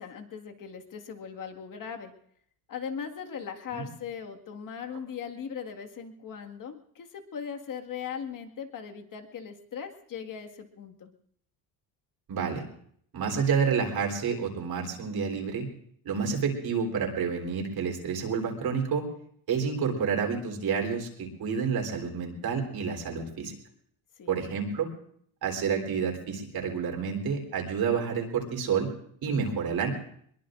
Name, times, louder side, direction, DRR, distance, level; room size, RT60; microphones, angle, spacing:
voice 1, 0.0-2.1 2.7-11.1 24.2-24.3, left 7 dB, 45° left, 5 dB, 1.9 m, -39 dB
voice 2, 12.3-12.6 13.1-15.7 16.0-19.0 19.5-23.6 24.3-24.9 25.4-28.9 29.2-29.9, right 6 dB, 55° right, 2 dB, 3.8 m, -29 dB
23.0 x 22.0 x 2.6 m, 0.65 s
cardioid pair, 110°, 45 cm